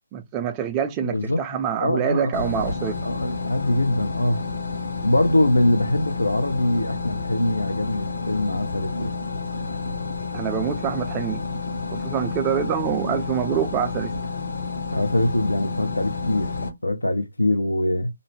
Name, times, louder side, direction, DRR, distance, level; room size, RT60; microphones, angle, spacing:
voice 1, 0.1-3.0 10.3-11.4 11.9-14.1, right 8 dB, 20° right, 0.4 m, -26 dB
voice 2, 1.0-1.4 1.8-2.3 3.0-4.4 5.0-9.2 14.9-16.5 16.8-18.1, left 1 dB, 85° left, 0.6 m, -23 dB
sound 1, 2.3-16.7, left 4 dB, 65° left, 1.1 m, -30 dB
2.5 x 2.1 x 3.1 m
figure-of-eight pair, 150°, 0 cm